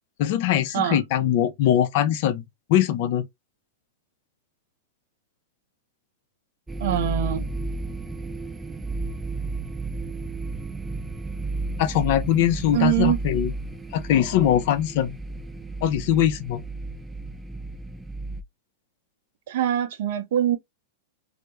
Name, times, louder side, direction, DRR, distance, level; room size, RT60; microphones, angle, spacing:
voice 1, 0.2-2.4 2.7-3.3 11.8-13.5 13.9-15.2 15.8-16.6, left 11 dB, 55° left, 0.5 m, -22 dB
sound 1, 6.7-18.4, right 2 dB, 10° right, 0.3 m, -33 dB
voice 2, 6.8-7.5 12.7-13.2 19.5-20.6, right 11 dB, 65° right, 0.6 m, -23 dB
2.2 x 2.0 x 2.9 m
hypercardioid pair, 110°, 0 cm